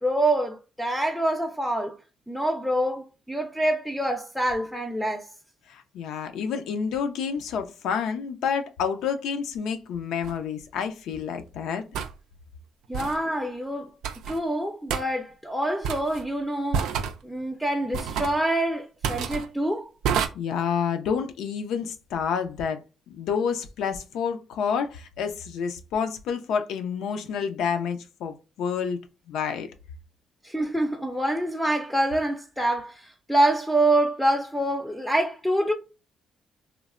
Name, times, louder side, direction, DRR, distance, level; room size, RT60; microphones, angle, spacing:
voice 1, 0.0-1.9 2.3-5.3 12.9-13.9 14.3-16.9 17.2-19.9 30.4-33.0 33.3-35.7, right 1 dB, 5° left, 0.5 m, -26 dB
voice 2, 5.7-11.8 20.3-22.8 23.1-29.0 29.3-29.7, left 6 dB, 85° left, 0.4 m, -29 dB
sound 1, 10.2-10.4 11.9-12.1 12.9-13.2 14.0-14.4 14.9-15.0 15.8-16.2 16.7-17.2 17.9-18.4 19.0-19.4 20.0-20.3, right 7 dB, 90° right, 0.3 m, -28 dB
3.1 x 2.0 x 2.4 m
cardioid pair, 90°, 0 cm